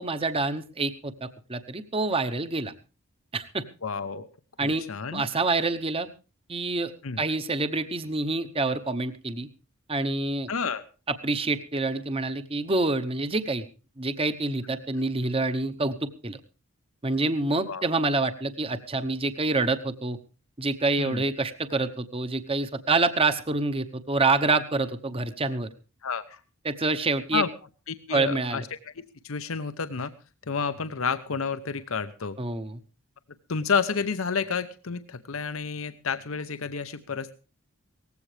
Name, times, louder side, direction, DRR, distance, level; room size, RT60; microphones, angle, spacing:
voice 1, 0.0-2.7 3.3-3.6 4.6-4.8 5.1-6.1 6.5-6.9 7.2-9.5 9.9-10.5 11.1-13.6 14.0-16.4 17.0-20.2 20.6-25.7 26.6-27.4 28.1-28.6 32.4-32.8, right 3 dB, 25° right, 10 dB, 0.9 m, -27 dB
voice 2, 3.8-4.3 4.9-5.2 7.0-7.2 10.5-10.8 17.7-17.9 21.0-21.2 26.0-26.4 27.3-27.5 27.9-28.6 29.2-30.1 30.5-32.4 33.5-37.3, left 5 dB, 70° left, 11 dB, 0.8 m, -30 dB
18.5 x 15.5 x 3.3 m, 0.34 s
head